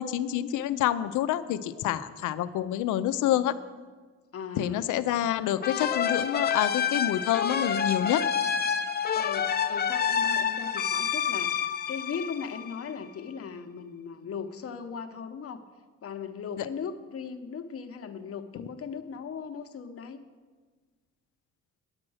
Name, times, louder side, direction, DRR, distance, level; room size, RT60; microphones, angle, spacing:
voice 1, 0.0-3.6 4.6-8.2 16.6-16.7, left 12 dB, 80° left, 13 dB, 0.6 m, -27 dB
voice 2, 4.3-4.9 9.1-15.6 16.0-20.2, left 6 dB, 50° left, 8 dB, 0.9 m, -38 dB
sound 1, 5.6-13.0, left 7 dB, 30° left, 0.6 m, -28 dB
9.6 x 7.5 x 6.3 m, 1.4 s
cardioid pair, 90°, 30 cm